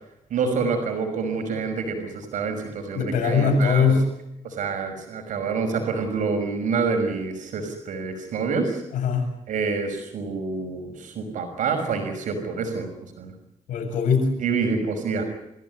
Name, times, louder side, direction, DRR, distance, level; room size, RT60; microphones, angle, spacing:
voice 1, 0.3-4.0 4.4-8.8 9.5-12.9 13.2-13.3 14.4-15.2, right 4 dB, 75° right, 4 dB, 5.9 m, -27 dB
voice 2, 2.9-4.1 8.9-9.3 13.7-14.4, left 5 dB, 90° left, 5 dB, 7.5 m, -21 dB
29.0 x 16.0 x 9.7 m, 0.83 s
cardioid pair, 80°, 13 cm